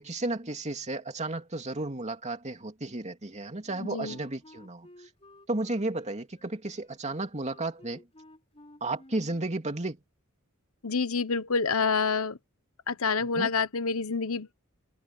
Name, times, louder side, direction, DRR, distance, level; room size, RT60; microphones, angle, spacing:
voice 1, 0.0-4.9 5.5-8.0 8.8-10.0 13.2-13.5, right 2 dB, 35° right, 2.7 m, -33 dB
Wind instrument woodwind instrument, 3.6-9.5, left 1 dB, 30° left, 4.4 m, -54 dB
voice 2, 3.8-4.2 10.8-12.4 12.9-14.6, left 5 dB, 85° left, 1.1 m, -28 dB
head